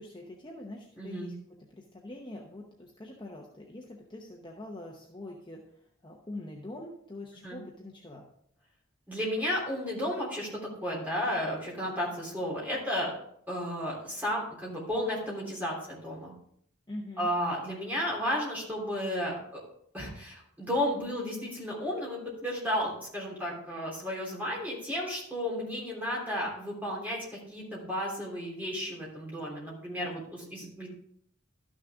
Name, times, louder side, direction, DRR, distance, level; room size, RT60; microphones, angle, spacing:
voice 1, 0.0-5.6 6.0-8.3 16.9-17.3, left 1 dB, 20° left, -1 dB, 0.9 m, -44 dB
voice 2, 1.0-1.3 7.4-7.6 9.1-13.1 13.5-16.3 17.2-19.6 19.9-30.9, equal, 10° right, -5 dB, 3.3 m, -33 dB
12.5 x 6.5 x 3.6 m, 0.68 s
head